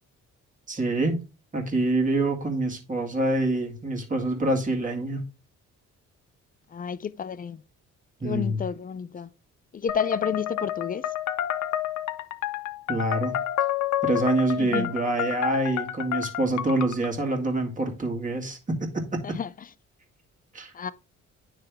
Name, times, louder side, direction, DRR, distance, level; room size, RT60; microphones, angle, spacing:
voice 1, 0.7-1.2 1.5-5.2 8.2-8.6 12.9-13.3 14.0-19.2 20.5-20.7, right 2 dB, 25° right, 2.0 m, -26 dB
voice 2, 6.7-7.6 8.2-9.3 9.7-11.1 14.6-14.9 19.2-19.5 20.7-20.9, left 7 dB, 30° left, 0.4 m, -30 dB
sound 1, 9.9-17.1, left 12 dB, 70° left, 0.7 m, -30 dB
9.7 x 3.4 x 3.4 m
cardioid pair, 90°, 30 cm